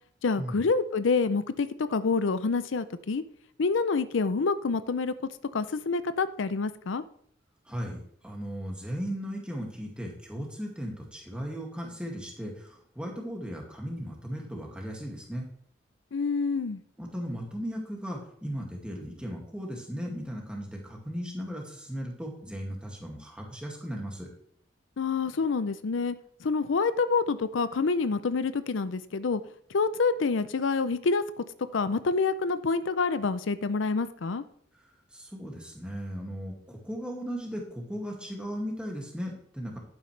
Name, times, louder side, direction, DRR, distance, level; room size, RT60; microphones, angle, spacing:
voice 1, 0.2-3.2 3.6-5.1 5.5-7.0 16.1-16.8 25.0-29.4 29.7-31.4 31.7-34.4, left 4 dB, 80° left, 13 dB, 0.5 m, -27 dB
voice 2, 7.6-15.5 17.0-24.3 34.7-34.8 35.1-39.8, equal, 5° right, -1 dB, 2.1 m, -37 dB
11.5 x 9.3 x 3.3 m, 0.63 s
head